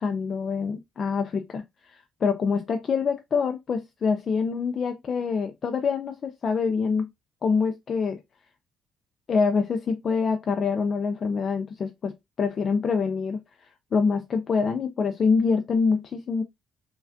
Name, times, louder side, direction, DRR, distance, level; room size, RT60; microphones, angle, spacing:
voice 1, 0.0-7.1 7.4-8.2 9.3-16.4, left 5 dB, 50° left, 0.4 m, -26 dB
3.2 x 2.3 x 2.5 m
supercardioid pair, 65°, 0 cm